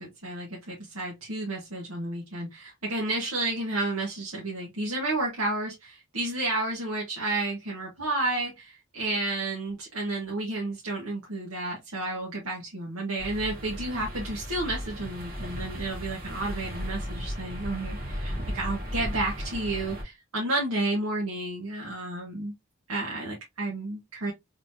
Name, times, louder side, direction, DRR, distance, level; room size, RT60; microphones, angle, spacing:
voice 1, 0.0-22.5 22.9-24.3, right 2 dB, 85° right, 1.4 m, -31 dB
windy schoolkids, 13.2-20.0, equal, 40° right, 1.6 m, -35 dB
3.7 x 3.6 x 2.7 m
head